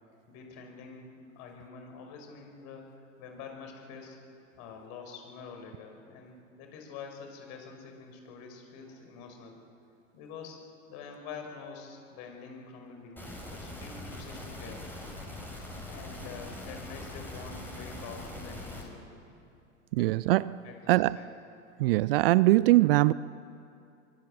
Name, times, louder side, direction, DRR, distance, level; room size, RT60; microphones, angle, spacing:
voice 1, 0.3-1.1 1.4-4.2 4.6-9.6 10.1-10.6 10.9-14.8 15.9-19.2 20.0-20.1 20.6-21.4, left 5 dB, 45° left, 5.7 m, -46 dB
sound 1, 13.2-18.8, left 1 dB, 5° left, 6.6 m, -42 dB
voice 2, 19.9-20.6 20.9-21.2 21.8-23.1, right 18 dB, 45° right, 0.5 m, -22 dB
24.0 x 23.5 x 7.5 m
figure-of-eight pair, 90°, 40 cm